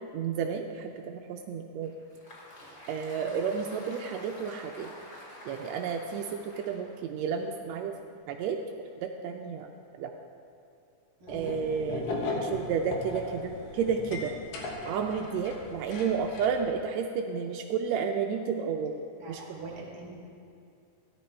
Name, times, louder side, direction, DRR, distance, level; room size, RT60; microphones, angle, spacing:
voice 1, 0.1-1.9 2.9-4.9 5.4-7.9 8.3-8.6 8.9-9.7 10.0-10.1 11.3-14.3 14.8-18.9 19.3-19.7, right 6 dB, 80° right, 3 dB, 1.6 m, -31 dB
Applause, 1.8-8.1, left 1 dB, 55° left, 0.7 m, -49 dB
voice 2, 11.2-11.6 19.2-20.1, right 2 dB, 40° right, -2 dB, 2.6 m, -45 dB
sound 1, 11.3-16.6, left 3 dB, 90° left, 2.9 m, -37 dB
14.0 x 10.5 x 4.4 m, 2.5 s
omnidirectional pair, 3.7 m